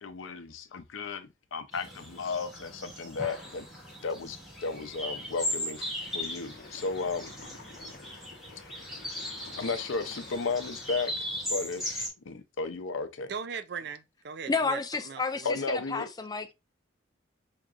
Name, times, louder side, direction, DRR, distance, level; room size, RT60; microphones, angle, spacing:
voice 1, 0.0-3.6 4.0-7.3 9.6-11.1 11.5-13.3 15.4-16.1, left 4 dB, 85° left, 0.6 m, -34 dB
sound 1, 1.7-12.1, left 1 dB, ahead, 1.7 m, -38 dB
sound 2, 5.4-11.1, left 3 dB, 55° left, 0.8 m, -51 dB
voice 2, 13.3-15.5, right 6 dB, 55° right, 0.4 m, -39 dB
voice 3, 14.5-16.5, left 4 dB, 20° left, 0.4 m, -31 dB
4.7 x 2.9 x 2.3 m
head